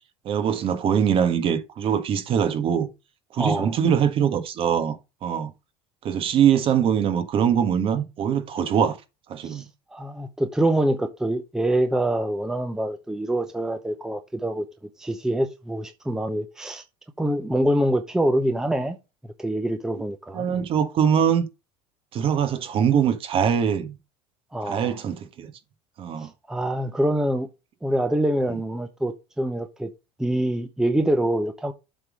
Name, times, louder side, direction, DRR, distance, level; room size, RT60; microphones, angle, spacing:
voice 1, 0.2-2.9 3.3-5.0 5.2-5.5 6.0-9.0 9.3-9.6 20.3-21.4 22.1-24.0 24.6-25.5 26.0-26.3, right 8 dB, 45° right, 1.4 m, -22 dB
voice 2, 3.4-3.8 9.4-9.6 9.9-14.6 15.0-16.8 17.2-19.0 19.4-20.5 24.5-25.0 26.2-27.5 27.8-29.9 30.2-31.7, right 1 dB, 5° right, 0.7 m, -25 dB
7.8 x 3.7 x 6.2 m
supercardioid pair, 130°, 13 cm